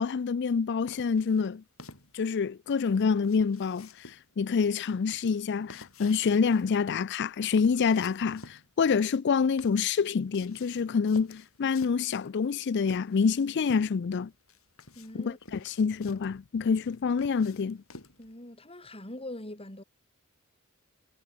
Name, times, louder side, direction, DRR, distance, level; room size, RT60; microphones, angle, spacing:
voice 1, 0.0-1.6 2.1-14.3 15.1-17.8, left 5 dB, 55° left, 0.4 m, -27 dB
sound 1, 0.9-18.3, left 3 dB, 80° left, 6.2 m, -51 dB
voice 2, 14.9-15.6 18.2-19.8, left 1 dB, 25° left, 6.4 m, -43 dB
head